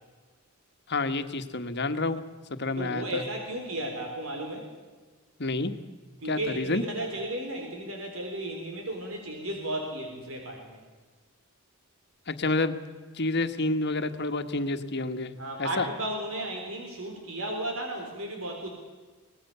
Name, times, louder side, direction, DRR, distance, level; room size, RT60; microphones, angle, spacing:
voice 1, 0.9-2.2 2.6-3.2 5.4-5.7 6.3-6.8 12.3-12.8 13.1-15.3 15.6-15.9, left 2 dB, 55° left, 8 dB, 1.5 m, -29 dB
voice 2, 2.8-4.7 6.2-10.8 15.4-18.7, right 1 dB, 90° right, 2 dB, 4.0 m, -34 dB
24.0 x 19.0 x 6.9 m, 1.4 s
head